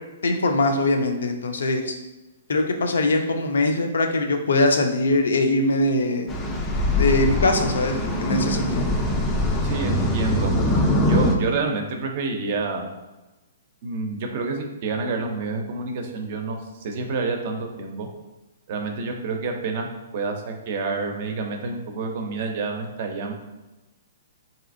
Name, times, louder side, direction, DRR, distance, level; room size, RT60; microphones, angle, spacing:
voice 1, 0.2-2.0 2.5-6.3 7.0-8.9, left 2 dB, 85° left, 4 dB, 0.5 m, -22 dB
sound 1, 6.3-11.4, left 1 dB, 15° left, 0.3 m, -22 dB
voice 2, 9.6-10.5 11.1-12.9 13.8-18.1 18.7-19.9 20.1-23.3, right 4 dB, 45° right, 4 dB, 0.5 m, -28 dB
3.3 x 2.7 x 2.5 m, 1.1 s
hypercardioid pair, 155°, 0 cm